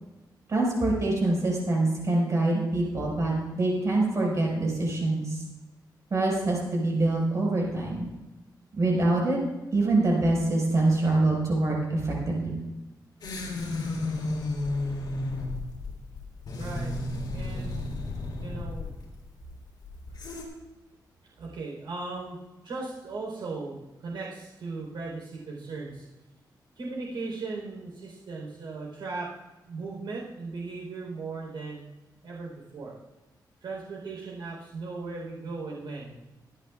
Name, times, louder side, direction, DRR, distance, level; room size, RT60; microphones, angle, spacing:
voice 1, 0.5-5.4 6.1-8.1 8.7-9.4 9.7-12.5, right 2 dB, 45° right, -2 dB, 5.4 m, -25 dB
sound 1, 13.2-20.4, left 2 dB, 65° left, 3.9 m, -33 dB
voice 2, 16.5-16.9 17.3-17.7 18.4-18.9 21.4-22.4 22.6-26.0 26.8-29.3 29.7-31.8 32.2-32.9 33.6-36.1, right 3 dB, 85° right, -3 dB, 4.1 m, -37 dB
23.5 x 10.5 x 2.5 m, 1.1 s
wide cardioid pair, 130°, 8 cm